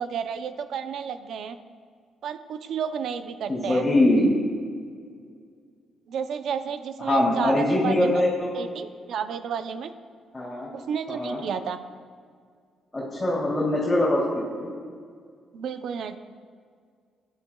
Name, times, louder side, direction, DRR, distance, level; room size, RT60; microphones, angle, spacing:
voice 1, 0.0-1.6 2.2-3.8 6.1-8.2 8.5-9.9 10.7-11.8 15.5-16.2, right 7 dB, 70° right, 10 dB, 0.5 m, -31 dB
voice 2, 3.5-4.4 7.1-8.5 10.3-10.7 11.2-11.4 12.9-14.7, left 1 dB, 20° left, -7 dB, 2.7 m, -22 dB
16.5 x 10.0 x 2.3 m, 2.1 s
cardioid pair, 90°, 0 cm